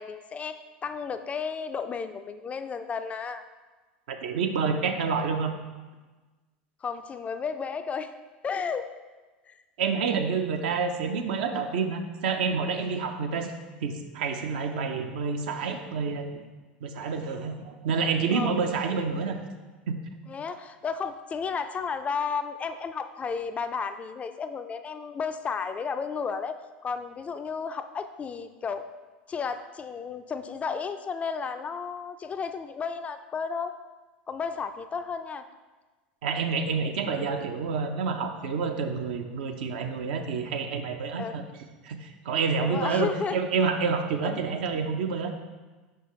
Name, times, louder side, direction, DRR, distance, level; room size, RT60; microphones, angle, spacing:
voice 1, 0.0-3.4 5.0-5.1 6.8-8.1 8.4-8.9 9.5-9.6 18.3-18.5 20.3-26.6 26.8-28.9 29.3-33.7 34.3-35.5 41.1-41.4 42.6-43.4 44.2-44.3, left 5 dB, 25° left, 9 dB, 0.3 m, -33 dB
voice 2, 4.1-5.5 9.8-13.5 13.8-16.3 16.8-19.4 19.9-20.0 36.2-41.4 41.8-45.3, right 5 dB, 65° right, 5 dB, 0.6 m, -28 dB
5.6 x 5.5 x 3.1 m, 1.3 s
hypercardioid pair, 85°, 5 cm